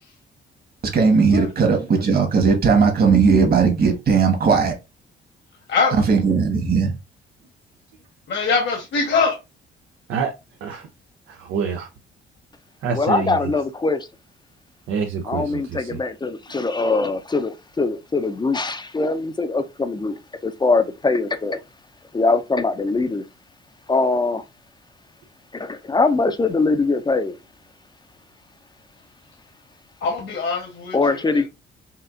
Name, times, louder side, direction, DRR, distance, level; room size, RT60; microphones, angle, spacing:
voice 1, 0.9-4.7 6.1-6.9, right 5 dB, 50° right, 1.7 m, -17 dB
voice 2, 8.3-9.4 30.0-31.5, left 4 dB, 65° left, 1.4 m, -23 dB
voice 3, 11.3-11.9 12.8-13.5 14.9-16.0, right 6 dB, 85° right, 0.7 m, -27 dB
voice 4, 12.9-14.1 15.3-21.6 22.1-23.2 23.9-24.4 25.5-27.4 30.9-31.5, left 3 dB, 20° left, 0.6 m, -22 dB
5.6 x 2.6 x 2.6 m
cardioid pair, 90°, 20 cm